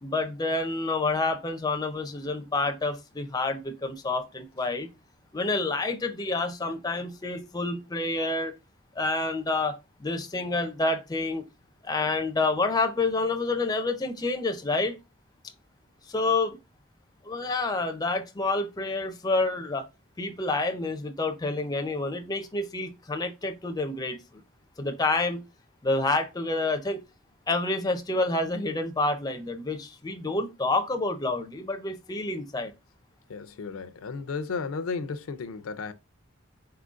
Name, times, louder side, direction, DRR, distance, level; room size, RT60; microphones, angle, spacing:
voice 1, 0.0-4.9 5.3-8.5 9.0-11.4 11.8-15.0 16.1-16.6 17.2-19.8 20.2-24.2 24.8-25.4 25.8-27.0 27.5-32.7, left 2 dB, 20° left, 0.4 m, -28 dB
voice 2, 33.3-35.9, left 4 dB, 80° left, 0.4 m, -34 dB
4.3 x 3.7 x 2.4 m
head